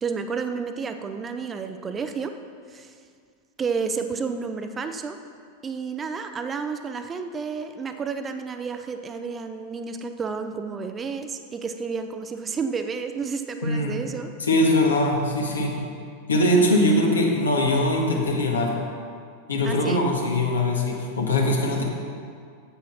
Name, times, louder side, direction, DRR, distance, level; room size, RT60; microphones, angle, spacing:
voice 1, 0.0-2.3 2.7-2.9 3.6-5.2 5.6-14.3 19.6-20.0, right 5 dB, 20° right, 8 dB, 0.6 m, -31 dB
voice 2, 13.6-14.0 14.5-15.8 16.3-18.7 19.5-21.8, left 1 dB, 70° left, 0 dB, 1.7 m, -21 dB
8.9 x 8.3 x 5.7 m, 2.2 s
figure-of-eight pair, 90°, 0 cm